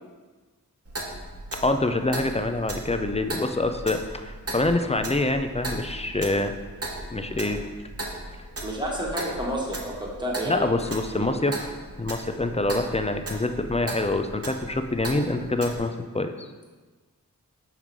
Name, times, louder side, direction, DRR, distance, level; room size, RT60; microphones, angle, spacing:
Clock, 0.8-15.8, right 1 dB, 45° right, 1.0 m, -37 dB
voice 1, 1.6-6.6 7.1-7.7 10.5-11.7 12.0-16.5, left 2 dB, 20° left, 7 dB, 0.4 m, -26 dB
voice 2, 8.6-10.7 11.1-11.3, right 1 dB, 15° right, -3 dB, 1.5 m, -30 dB
5.6 x 3.7 x 4.6 m, 1.3 s
wide cardioid pair, 50°, 34 cm